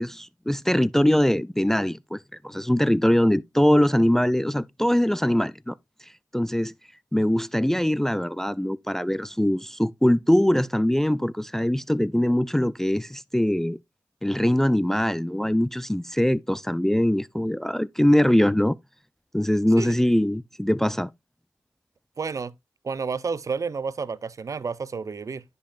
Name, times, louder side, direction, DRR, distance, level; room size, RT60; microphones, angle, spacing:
voice 1, 0.0-5.8 6.3-6.7 7.1-13.8 14.2-18.8 19.3-21.1, left 1 dB, 5° left, 0.4 m, -22 dB
voice 2, 22.2-22.5 22.8-25.4, right 5 dB, 50° right, 0.6 m, -30 dB
11.5 x 5.4 x 2.4 m
supercardioid pair, 50°, 7 cm